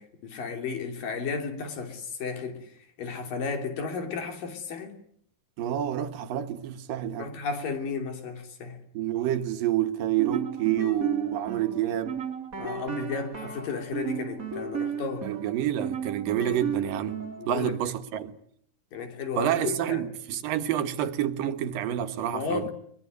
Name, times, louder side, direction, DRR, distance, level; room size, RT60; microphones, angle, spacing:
voice 1, 0.0-5.0 7.2-8.8 12.6-15.3 17.4-17.7 18.9-20.0 22.3-22.7, left 5 dB, 80° left, 4.9 m, -33 dB
voice 2, 5.6-7.3 8.9-12.2 15.2-17.2 17.5-18.3 19.4-22.7, right 11 dB, 85° right, 3.1 m, -28 dB
sound 1, 10.2-17.5, right 6 dB, 30° right, 2.2 m, -34 dB
23.0 x 22.5 x 9.5 m
omnidirectional pair, 3.8 m